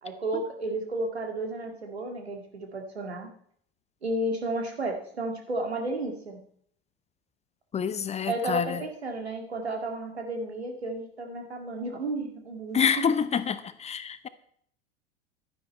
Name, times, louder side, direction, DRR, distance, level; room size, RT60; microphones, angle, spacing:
voice 1, 0.0-3.3 4.0-6.4 8.2-13.0, right 2 dB, 85° right, 3 dB, 2.0 m, -33 dB
voice 2, 7.7-8.8 12.7-14.3, left 7 dB, 20° left, 14 dB, 0.7 m, -27 dB
11.0 x 10.5 x 4.4 m, 0.63 s
figure-of-eight pair, 80°, 31 cm